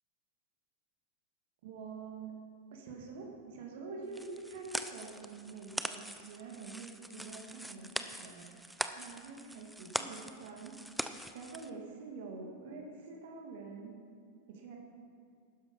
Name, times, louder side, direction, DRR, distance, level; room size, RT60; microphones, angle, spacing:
voice 1, 1.6-2.4 2.7-8.5 8.9-10.8 11.3-14.0 14.5-14.8, right 4 dB, 55° right, 0 dB, 2.1 m, -46 dB
sound 1, 4.1-11.7, right 1 dB, ahead, 0.6 m, -42 dB
12.0 x 10.0 x 5.4 m, 2.4 s
figure-of-eight pair, 90°, 0 cm